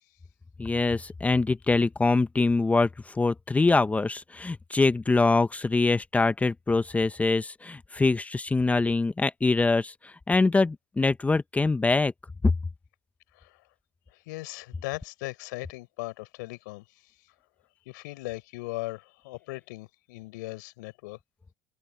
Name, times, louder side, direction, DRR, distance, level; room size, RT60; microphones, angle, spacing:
voice 1, 0.6-12.1 12.4-12.5, left 3 dB, 15° left, 1.0 m, -24 dB
voice 2, 14.3-16.8 17.9-21.2, left 23 dB, 80° left, 5.7 m, -38 dB
supercardioid pair, 95°, 10 cm